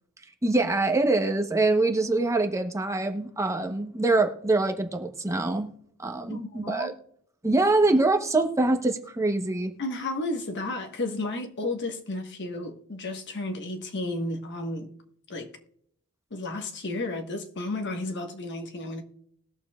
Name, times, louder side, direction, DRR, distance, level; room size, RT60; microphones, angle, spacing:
voice 1, 0.4-5.7 6.0-6.9 7.4-9.7, right 2 dB, 15° right, 0.9 m, -24 dB
voice 2, 6.3-6.9 9.8-14.9 15.3-15.5 16.3-19.0, left 2 dB, 55° left, 1.4 m, -32 dB
20.5 x 6.9 x 2.3 m
head